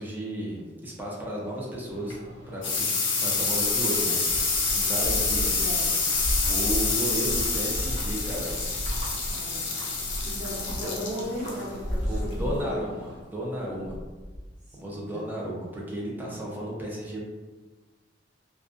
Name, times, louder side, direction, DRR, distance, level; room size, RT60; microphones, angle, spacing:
voice 1, 0.0-2.2 2.5-2.7 3.2-4.2 4.5-5.5 6.5-8.6 10.8-10.9 12.1-13.9 14.8-17.2, right 1 dB, 10° right, -4 dB, 0.4 m, -33 dB
sound 1, 1.9-13.2, left 4 dB, 80° left, 0.5 m, -28 dB
sound 2, 3.7-13.3 13.6-14.5, equal, 70° right, 0.9 m, -34 dB
voice 2, 5.0-6.1 9.2-9.6 10.2-12.9 14.7-15.3 16.2-16.3, equal, 40° right, -8 dB, 0.9 m, -37 dB
2.4 x 2.2 x 2.4 m, 1.3 s
head